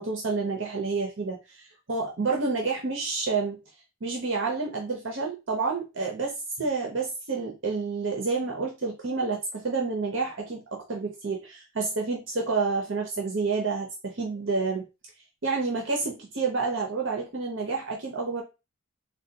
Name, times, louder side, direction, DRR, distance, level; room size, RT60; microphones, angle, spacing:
voice 1, 0.0-3.6 4.0-14.8 15.4-18.4, right 4 dB, 60° right, 1 dB, 0.7 m, -29 dB
3.8 x 2.2 x 2.7 m, 0.26 s
head